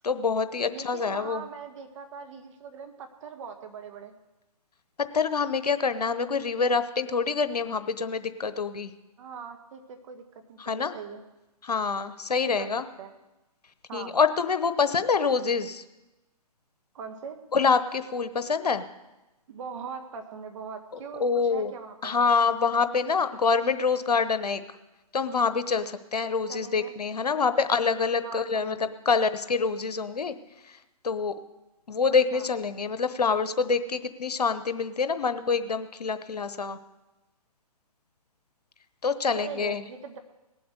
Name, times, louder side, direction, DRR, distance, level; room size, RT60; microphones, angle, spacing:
voice 1, 0.0-1.4 5.1-8.9 10.6-10.9 11.6-12.9 13.9-15.8 17.5-18.8 21.2-21.7 22.0-24.6 25.1-28.8 29.1-30.3 30.7-30.8 31.0-31.3 31.9-36.8 39.0-39.8, left 5 dB, 85° left, 11 dB, 1.0 m, -26 dB
voice 2, 0.7-4.1 9.2-11.2 12.4-12.7 13.0-13.1 13.9-14.2 16.9-17.4 19.5-22.2 26.5-26.9 28.2-28.9 32.3-32.5 39.3-40.2, right 6 dB, 50° right, 6 dB, 1.8 m, -41 dB
19.0 x 7.8 x 6.6 m, 1.0 s
hypercardioid pair, 135°, 20 cm